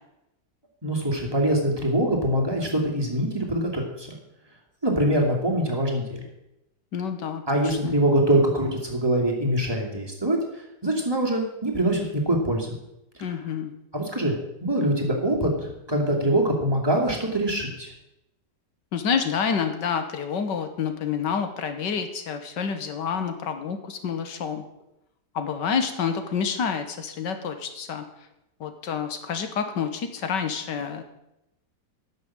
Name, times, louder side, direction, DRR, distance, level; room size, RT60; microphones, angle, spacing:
voice 1, 0.8-4.1 4.8-6.2 7.5-10.4 10.8-12.7 13.9-17.9, right 1 dB, 15° right, -2 dB, 2.6 m, -24 dB
voice 2, 6.9-8.0 13.2-13.7 18.9-24.6 25.3-28.1 28.6-31.0, left 6 dB, 85° left, 8 dB, 1.9 m, -28 dB
11.0 x 7.0 x 8.7 m, 0.87 s
omnidirectional pair, 1.8 m